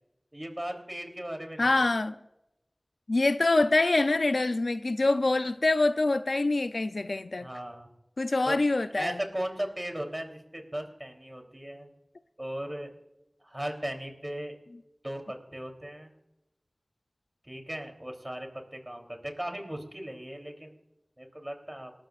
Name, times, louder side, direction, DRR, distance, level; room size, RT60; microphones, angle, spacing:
voice 1, 0.3-1.9 7.4-7.9 8.4-8.6 8.9-11.9 12.4-12.9 13.4-14.6 15.0-16.1 17.4-20.8 21.2-21.9, right 1 dB, 25° right, 3.2 m, -37 dB
voice 2, 1.6-2.2 3.1-7.5 8.2-9.2, left 2 dB, 90° left, 0.4 m, -25 dB
28.0 x 13.0 x 2.5 m
wide cardioid pair, 50°, 0 cm